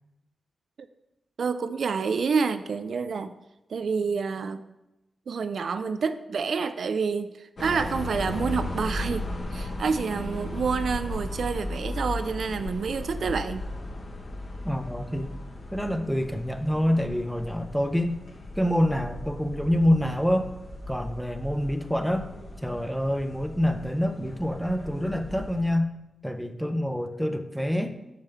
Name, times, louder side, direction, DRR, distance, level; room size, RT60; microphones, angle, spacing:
voice 1, 1.4-3.3 3.7-4.6 5.3-9.3 9.5-13.7, right 5 dB, 70° right, 11 dB, 0.3 m, -28 dB
sound 1, 7.6-25.7, left 1 dB, 55° left, 1.1 m, -36 dB
voice 2, 14.6-15.3 15.7-18.2 18.6-20.5 20.9-22.3 22.6-25.9 26.2-27.9, equal, ahead, 8 dB, 0.5 m, -26 dB
7.1 x 5.6 x 3.4 m, 0.92 s
cardioid pair, 80°, 0 cm